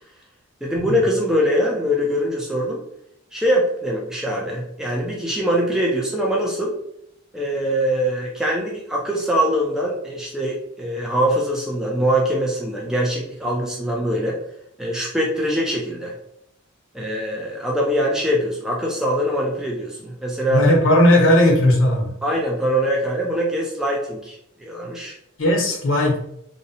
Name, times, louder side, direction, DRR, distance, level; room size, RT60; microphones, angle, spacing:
voice 1, 0.6-2.8 3.3-6.7 7.3-14.4 14.8-16.1 16.9-20.7 22.2-25.1, equal, 5° right, -3 dB, 0.3 m, -23 dB
voice 2, 20.5-22.1 25.4-26.2, left 1 dB, 75° left, 0 dB, 0.7 m, -16 dB
2.6 x 2.0 x 2.7 m, 0.75 s
head